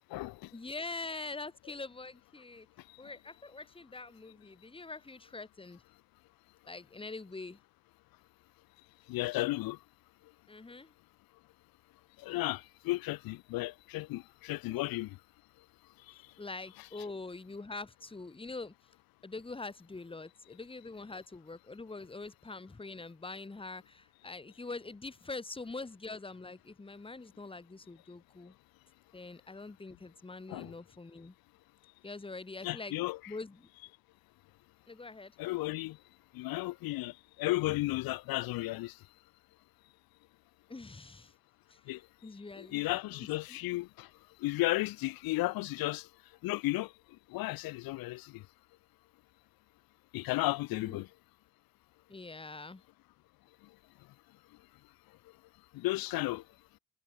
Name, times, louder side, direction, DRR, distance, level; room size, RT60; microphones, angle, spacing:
voice 1, 0.0-0.5 9.1-9.8 12.2-15.2 16.1-16.2 16.8-16.9 30.5-30.7 32.6-33.2 35.4-36.0 36.3-39.0 41.9-42.0 42.6-44.1 44.4-46.1 46.4-46.9 47.3-48.4 50.1-51.1 55.7-56.4, left 19 dB, 70° left, 0.5 m, -34 dB
voice 2, 0.5-2.7 3.0-5.8 6.6-7.6 10.5-10.9 14.7-14.8 16.4-18.7 19.2-28.5 29.1-31.3 32.0-32.9 33.3-33.7 34.9-35.3 40.7-41.3 41.7-41.8 42.2-43.6 50.7-51.0 52.1-52.8, left 3 dB, 15° left, 1.2 m, -44 dB
cardioid pair, 90°, 37 cm